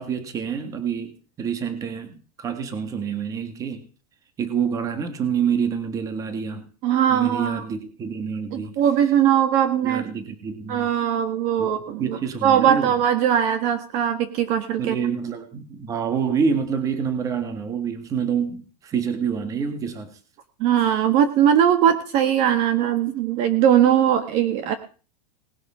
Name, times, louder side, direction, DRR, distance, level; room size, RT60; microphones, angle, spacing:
voice 1, 0.0-3.8 4.4-6.6 7.1-8.7 9.8-10.9 11.6-11.7 12.0-12.9 14.8-20.1, right 6 dB, 15° right, 1.7 m, -27 dB
voice 2, 6.8-7.6 8.5-10.0 10.7-15.0 20.6-24.7, right 9 dB, 30° right, 1.5 m, -20 dB
19.0 x 11.5 x 4.9 m
supercardioid pair, 180°, 21 cm